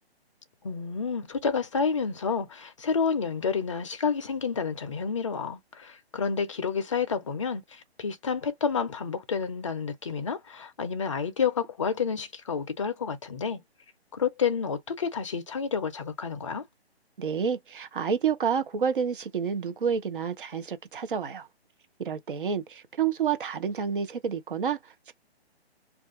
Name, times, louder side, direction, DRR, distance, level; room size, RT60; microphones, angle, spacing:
voice 1, 0.6-13.6 14.1-16.6, left 6 dB, 30° left, 0.5 m, -29 dB
voice 2, 17.2-21.5 22.0-25.1, right 7 dB, 50° right, 0.7 m, -29 dB
2.5 x 2.3 x 3.6 m
figure-of-eight pair, 140°, 33 cm